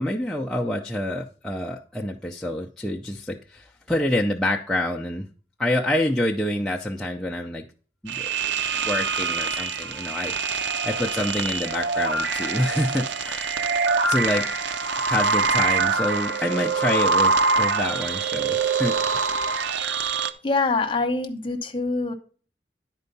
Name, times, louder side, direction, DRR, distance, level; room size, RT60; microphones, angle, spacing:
voice 1, 0.0-5.3 5.6-7.7 8.0-8.5 8.8-10.3 10.8-13.6 14.1-14.5 15.1-19.3, left 1 dB, 5° left, -2 dB, 0.5 m, -27 dB
sound 1, 8.1-20.3, right 4 dB, 80° right, 0.6 m, -24 dB
voice 2, 20.4-22.1, left 3 dB, 30° left, 5 dB, 1.1 m, -24 dB
10.5 x 4.5 x 5.3 m, 0.40 s
head